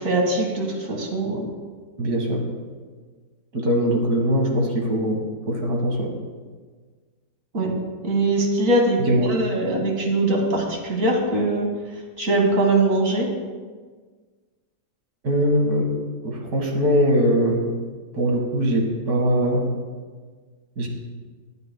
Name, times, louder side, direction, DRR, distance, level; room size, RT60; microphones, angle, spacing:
voice 1, 0.0-1.5 7.5-7.7 8.0-11.7 11.9-13.3, right 2 dB, 55° right, 1 dB, 2.3 m, -22 dB
voice 2, 2.0-2.4 3.5-6.1 9.1-9.3 15.2-15.9 16.2-17.6 18.1-19.6 20.8-20.9, equal, 75° right, 1 dB, 2.4 m, -21 dB
21.5 x 9.8 x 2.3 m, 1.5 s
omnidirectional pair, 1.7 m